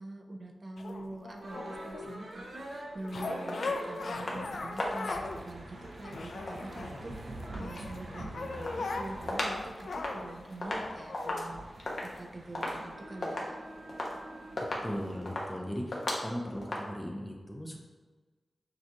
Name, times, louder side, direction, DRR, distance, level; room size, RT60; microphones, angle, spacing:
voice 1, 0.0-13.6, right 2 dB, 40° right, 2 dB, 0.4 m, -45 dB
sound 1, 0.8-2.1 3.0-5.4 5.7-7.2 7.6-11.5 12.2-12.3, left 3 dB, 75° left, 0.3 m, -39 dB
sound 2, 1.4-15.2, right 1 dB, 90° right, 0.8 m, -46 dB
sound 3, 3.5-3.8 4.2-4.5 4.8-5.4 6.3-7.9 8.3-9.6 9.9-16.8, left 1 dB, 55° left, 0.7 m, -37 dB
voice 2, 14.5-17.8, equal, 10° left, 1 dB, 0.5 m, -38 dB
6.5 x 2.4 x 2.9 m, 1.4 s
wide cardioid pair, 140°, 0 cm